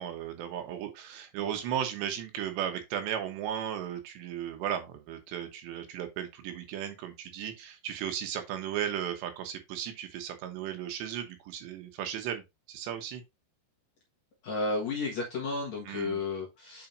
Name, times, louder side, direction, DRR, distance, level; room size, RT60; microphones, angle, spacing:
voice 1, 0.0-12.4 12.7-13.2 15.9-16.2, right 10 dB, 80° right, 3.2 m, -35 dB
voice 2, 14.4-16.9, left 3 dB, 55° left, 2.1 m, -32 dB
8.9 x 5.0 x 2.6 m
omnidirectional pair, 5.1 m